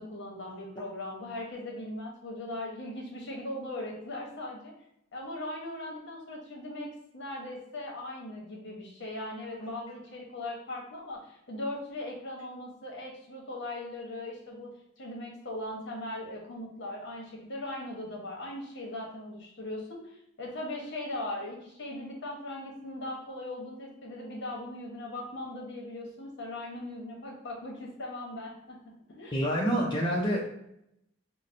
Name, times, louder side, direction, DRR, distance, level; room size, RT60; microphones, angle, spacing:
voice 1, 0.0-4.7 5.1-14.7 15.0-29.4, left 1 dB, 60° left, -1 dB, 0.9 m, -39 dB
voice 2, 29.3-30.5, equal, 25° left, -4 dB, 0.5 m, -27 dB
5.5 x 2.0 x 2.5 m, 0.78 s
head